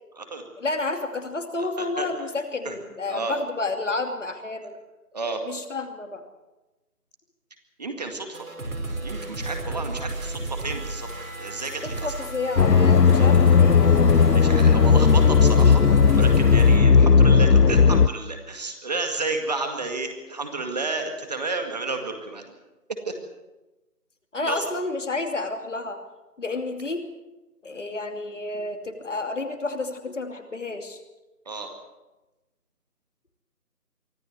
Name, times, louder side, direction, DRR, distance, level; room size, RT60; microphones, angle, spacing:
voice 1, 0.6-4.7 5.4-6.2 11.8-13.9 24.3-26.0 26.4-27.1 27.6-31.0, left 3 dB, 50° left, 5 dB, 2.7 m, -30 dB
voice 2, 1.6-2.1 2.6-2.8 3.1-3.3 5.1-5.4 7.8-8.5 9.0-11.1 11.4-12.3 13.1-13.3 14.3-15.8 16.1-22.5 23.1-23.2 24.4-24.7 31.5-31.7, right 3 dB, 25° right, 5 dB, 2.1 m, -31 dB
sound 1, 8.3-16.8, right 2 dB, 60° right, 5.7 m, -34 dB
sound 2, 12.6-18.1, left 5 dB, 85° left, 0.9 m, -16 dB
24.0 x 14.5 x 8.1 m, 1.1 s
figure-of-eight pair, 160°, 46 cm